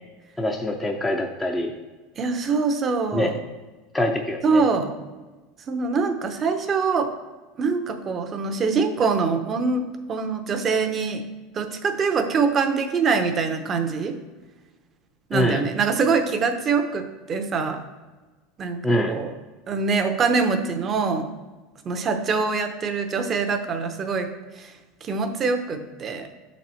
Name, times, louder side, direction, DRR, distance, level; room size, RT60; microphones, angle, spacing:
voice 1, 0.4-1.7 3.1-3.3 3.9-4.6 15.3-15.7 18.8-19.2, left 1 dB, 10° left, 2 dB, 0.5 m, -24 dB
voice 2, 2.2-3.3 4.4-4.9 5.7-7.1 7.6-11.2 11.5-14.2 15.3-17.8 18.6-18.8 19.1-19.3 19.7-21.3 21.8-24.7 25.0-26.3, right 4 dB, 30° right, 7 dB, 0.7 m, -24 dB
7.1 x 4.2 x 4.4 m, 1.3 s
supercardioid pair, 135°, 0 cm